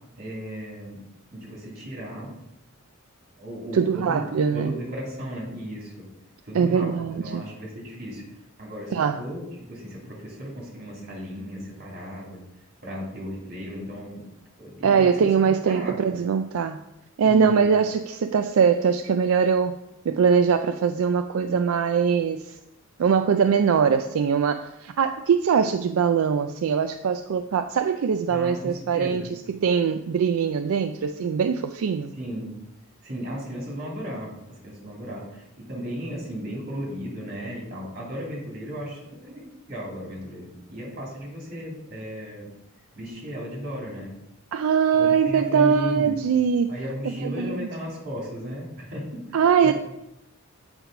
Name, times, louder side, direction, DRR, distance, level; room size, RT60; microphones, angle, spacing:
voice 1, 0.2-1.0 1.3-2.3 3.4-6.1 6.4-8.2 8.6-12.4 12.8-14.3 14.6-16.1 17.2-17.6 28.3-29.3 32.2-32.5 33.0-39.4 39.7-42.5 42.9-44.1 44.9-46.2 46.7-49.7, equal, 50° right, -3 dB, 2.8 m, -35 dB
voice 2, 3.7-4.7 6.5-7.4 8.9-9.2 14.8-16.8 17.2-19.7 20.1-22.6 23.0-32.1 44.5-46.8 47.2-47.7 49.3-49.7, right 6 dB, 80° right, 8 dB, 0.4 m, -22 dB
8.0 x 4.8 x 4.9 m, 0.88 s
head